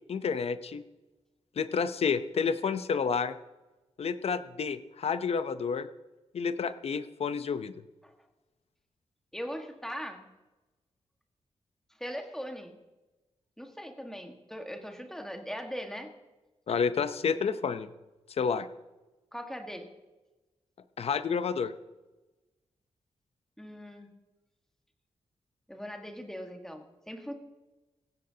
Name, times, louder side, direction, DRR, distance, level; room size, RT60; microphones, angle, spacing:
voice 1, 0.1-0.8 1.6-3.3 4.0-5.9 6.3-7.7 16.7-17.9 18.4-18.7 21.0-21.7, left 6 dB, 65° left, 12 dB, 0.7 m, -30 dB
voice 2, 9.3-10.2 12.0-12.7 13.6-16.1 19.3-19.9 23.6-24.1 25.7-27.3, equal, 5° left, 4 dB, 1.6 m, -40 dB
16.0 x 16.0 x 2.9 m, 1.1 s
wide cardioid pair, 95°, 11 cm